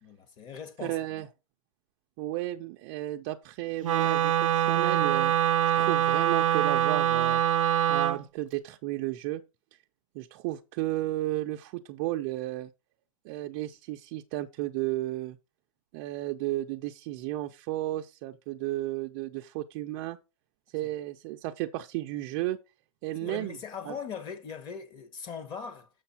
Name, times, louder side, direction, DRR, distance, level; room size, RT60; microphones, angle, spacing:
voice 1, 0.0-1.2 4.0-4.1 20.8-20.9 23.2-25.9, left 6 dB, 25° left, 1.3 m, -40 dB
voice 2, 0.8-1.3 2.2-5.3 5.7-7.4 7.9-9.4 10.1-12.7 13.2-15.4 15.9-20.2 20.7-22.6 23.0-23.6 23.9-24.0, right 16 dB, 30° right, 0.5 m, -33 dB
Wind instrument woodwind instrument, 3.8-8.2, right 11 dB, 85° right, 0.5 m, -24 dB
6.9 x 6.4 x 4.3 m
hypercardioid pair, 155°, 16 cm